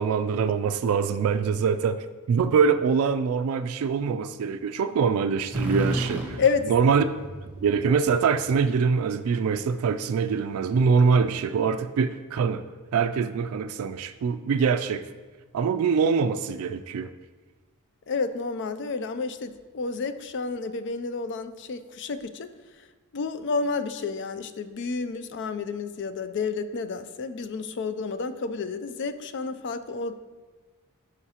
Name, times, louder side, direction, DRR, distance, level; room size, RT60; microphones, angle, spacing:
voice 1, 0.0-6.4 6.7-7.0 7.6-12.6 12.9-15.0 15.5-17.1, right 5 dB, 70° right, 9 dB, 0.3 m, -24 dB
sound 1, 5.5-9.3, right 1 dB, 5° right, 1.2 m, -33 dB
voice 2, 6.4-6.7 18.1-22.5 22.8-22.9 23.1-30.1, left 4 dB, 55° left, 11 dB, 0.4 m, -30 dB
12.5 x 5.0 x 2.9 m, 1.3 s
head